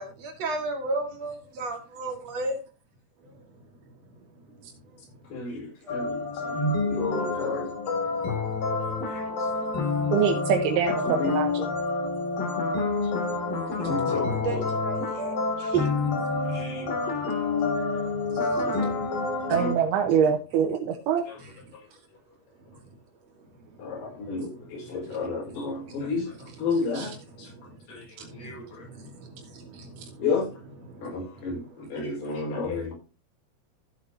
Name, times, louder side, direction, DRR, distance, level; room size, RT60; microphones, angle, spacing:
voice 1, 0.0-2.6 5.8-6.0 14.3-15.9 18.3-18.7 23.8-26.1 27.4-27.8 28.2-30.2 30.8-31.6 32.5-32.8, right 3 dB, 50° right, 2.7 m, -35 dB
voice 2, 5.3-7.7 9.1-9.2 11.0-11.3 13.8-14.6 16.5-17.1 17.6-17.8 18.5-19.2 19.5-19.7 21.3-21.4 23.8-27.1 27.4-27.5 27.9-28.9 30.2-30.5 31.0-32.9, left 3 dB, 80° left, 6.7 m, -32 dB
sound 1, 5.9-19.7, left 3 dB, 65° left, 4.4 m, -28 dB
voice 3, 10.1-11.7 19.5-21.2 26.9-27.1 30.0-30.1, right 7 dB, 85° right, 3.1 m, -24 dB
14.5 x 8.2 x 2.8 m
omnidirectional pair, 4.5 m